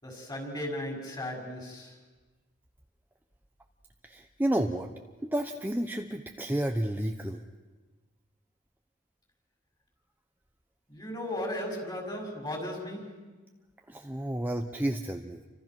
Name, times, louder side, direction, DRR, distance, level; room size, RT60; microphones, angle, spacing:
voice 1, 0.0-2.0 10.9-13.3, left 1 dB, 20° left, 1 dB, 6.1 m, -36 dB
voice 2, 4.0-4.9 5.2-7.4 13.9-15.4, right 1 dB, 10° right, 4 dB, 0.9 m, -31 dB
29.5 x 25.5 x 6.2 m, 1.2 s
head